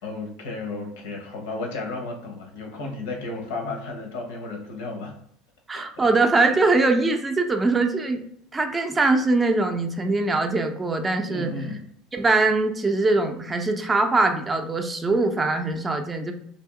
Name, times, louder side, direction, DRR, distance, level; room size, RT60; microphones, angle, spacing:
voice 1, 0.0-5.1 5.8-6.1 11.3-11.8, left 3 dB, 90° left, 2 dB, 0.9 m, -33 dB
voice 2, 5.7-8.2 8.5-11.5 12.1-16.3, right 3 dB, 15° right, 4 dB, 0.4 m, -22 dB
3.4 x 2.7 x 3.6 m, 0.67 s
supercardioid pair, 125°, 0 cm